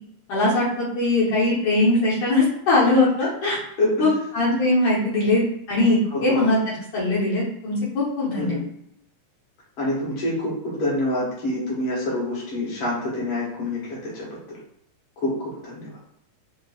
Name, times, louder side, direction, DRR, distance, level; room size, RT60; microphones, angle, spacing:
voice 1, 0.3-3.6 4.0-8.6, left 2 dB, 75° left, -7 dB, 2.2 m, -21 dB
voice 2, 6.1-6.4 8.4-8.6 9.8-14.4 15.2-15.9, left 1 dB, 55° left, -6 dB, 2.1 m, -26 dB
5.5 x 2.0 x 2.3 m, 0.76 s
omnidirectional pair, 3.3 m